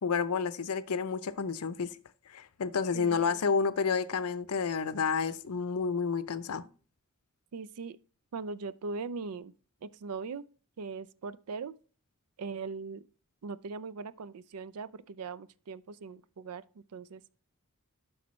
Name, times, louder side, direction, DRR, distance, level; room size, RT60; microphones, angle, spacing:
voice 1, 0.0-1.9 2.3-6.6, left 5 dB, 85° left, 0.6 m, -30 dB
voice 2, 7.5-8.0 8.3-9.5 9.8-10.4 10.8-11.7 12.4-13.0 13.4-16.6 16.9-17.2, right 4 dB, 85° right, 0.4 m, -40 dB
10.5 x 6.3 x 3.1 m
head